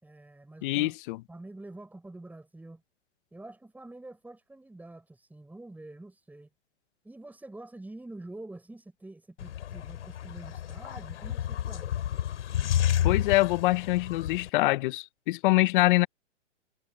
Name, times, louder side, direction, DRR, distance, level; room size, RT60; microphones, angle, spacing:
voice 1, 0.0-1.0 1.3-2.8 3.3-6.5 7.0-12.0, right 2 dB, 5° right, 7.1 m, -46 dB
voice 2, 0.6-1.2 13.0-16.1, left 19 dB, 45° left, 0.9 m, -24 dB
sound 1, 9.4-14.5, left 11 dB, 70° left, 3.6 m, -30 dB
hypercardioid pair, 130°, 37 cm